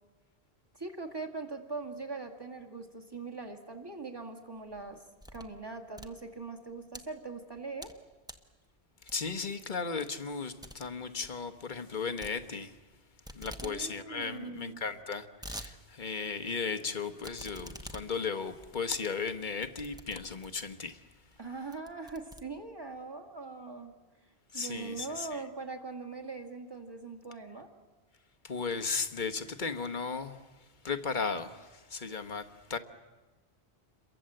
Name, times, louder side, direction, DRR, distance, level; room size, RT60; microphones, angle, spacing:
voice 1, 0.7-5.0 5.3-7.9 13.6-14.8 21.4-24.0 24.5-27.7, right 4 dB, 20° right, 2.3 m, -41 dB
sound 1, 4.6-5.6 5.9-7.0 7.5-8.0 8.2-8.5 9.1-9.4 9.8-9.9 10.2-10.3 10.6-10.8 11.1-11.4 12.2-12.9 13.2-13.8 14.1-14.2 14.4-14.5 15.0-15.7 16.1-16.2 17.2-20.7 21.3-21.4 21.7-23.0, equal, 5° right, 1.1 m, -47 dB
voice 2, 9.1-12.7 13.3-21.0 24.5-25.3 28.4-30.4 30.8-32.8, left 5 dB, 45° left, 1.3 m, -35 dB
28.5 x 23.0 x 7.8 m
omnidirectional pair, 1.1 m